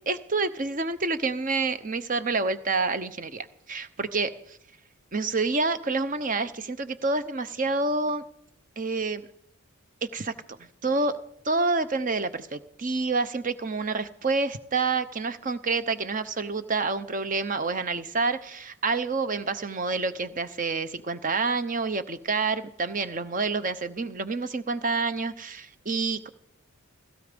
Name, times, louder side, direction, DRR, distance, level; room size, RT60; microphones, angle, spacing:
voice 1, 0.1-4.6 5.1-8.2 8.8-9.2 10.0-11.2 11.4-26.3, right 3 dB, 40° right, 12 dB, 0.9 m, -28 dB
16.5 x 16.5 x 5.2 m, 0.71 s
head